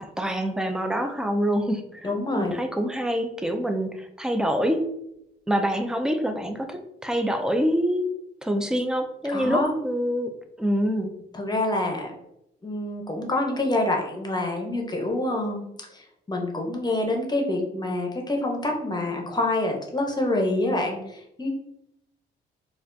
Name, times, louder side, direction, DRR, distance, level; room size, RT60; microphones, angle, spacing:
voice 1, 0.2-2.1 2.3-4.8 5.5-8.1 8.4-10.3 10.6-11.1, equal, 5° right, 6 dB, 0.4 m, -26 dB
voice 2, 2.0-2.5 9.3-9.7 11.3-12.1 12.6-21.5, left 2 dB, 20° left, 1 dB, 0.8 m, -27 dB
4.1 x 2.4 x 2.6 m, 0.82 s
cardioid pair, 90°, 20 cm